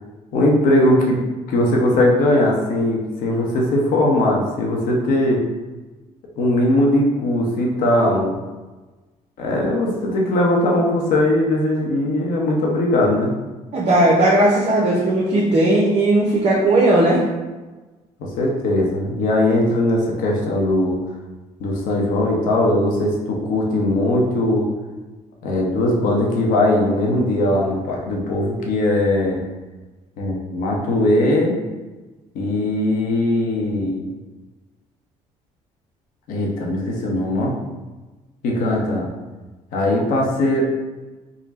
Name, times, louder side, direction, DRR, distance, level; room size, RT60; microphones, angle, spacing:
voice 1, 0.3-1.2 1.5-5.4 6.4-8.4 9.4-13.3 18.2-21.0 21.6-24.7 25.4-29.4 30.2-31.6 32.3-34.1 36.3-37.6 38.4-39.1 39.7-40.7, left 1 dB, 70° left, -1 dB, 0.9 m, -19 dB
voice 2, 13.7-17.2, right 1 dB, 45° right, -4 dB, 0.9 m, -16 dB
3.7 x 2.2 x 4.1 m, 1.2 s
supercardioid pair, 90°, 15 cm